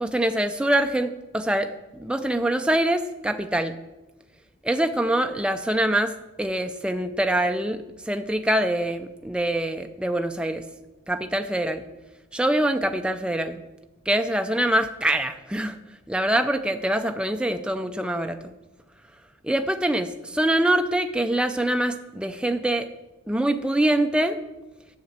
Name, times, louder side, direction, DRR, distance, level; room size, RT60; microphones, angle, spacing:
voice 1, 0.0-3.8 4.6-6.1 6.4-10.6 11.1-11.9 12.3-13.6 14.1-15.8 16.1-18.5 19.4-22.9 23.3-24.4, right 1 dB, 5° right, 7 dB, 0.4 m, -24 dB
7.2 x 6.7 x 7.4 m, 1.0 s
head